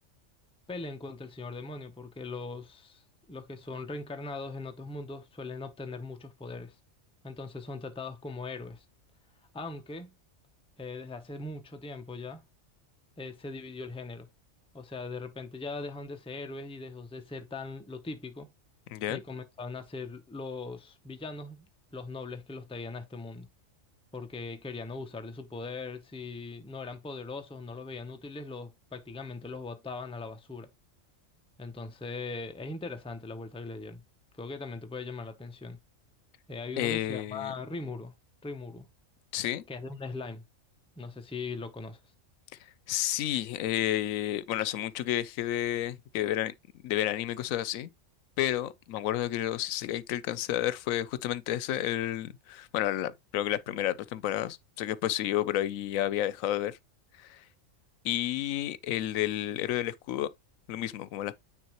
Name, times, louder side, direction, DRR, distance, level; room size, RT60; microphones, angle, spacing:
voice 1, 0.7-6.8 7.2-8.8 9.5-10.1 10.8-12.4 13.2-14.3 14.7-18.5 19.1-23.5 24.1-30.7 31.6-34.0 34.4-35.8 36.5-38.1 38.4-38.9 39.7-40.4 41.0-42.0, left 3 dB, 5° left, 0.5 m, -40 dB
voice 2, 18.9-19.2 36.8-37.5 39.3-39.6 42.9-46.5 46.8-47.9 48.4-56.8 57.2-57.4 58.0-60.3 60.7-61.3, left 13 dB, 90° left, 1.0 m, -31 dB
9.3 x 3.7 x 3.0 m
omnidirectional pair, 1.4 m